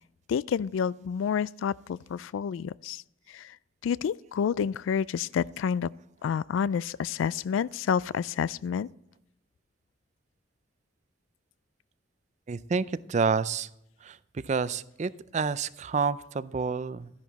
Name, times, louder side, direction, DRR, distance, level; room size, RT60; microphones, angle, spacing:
voice 1, 0.3-3.0 3.3-3.6 3.8-5.9 6.2-8.9, left 7 dB, 85° left, 0.3 m, -29 dB
voice 2, 12.5-13.7 14.0-17.1, right 5 dB, 35° right, 0.4 m, -29 dB
12.5 x 10.5 x 4.0 m
head